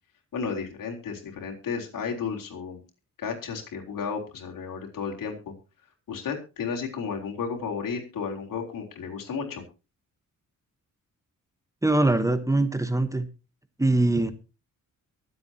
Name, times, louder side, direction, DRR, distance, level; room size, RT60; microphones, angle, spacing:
voice 1, 0.3-2.8 3.2-5.5 6.1-9.6, left 6 dB, 85° left, 1 dB, 3.7 m, -33 dB
voice 2, 11.8-13.3 13.8-14.3, right 2 dB, 10° right, 10 dB, 1.1 m, -22 dB
23.5 x 8.0 x 2.9 m, 0.32 s
wide cardioid pair, 120°, 32 cm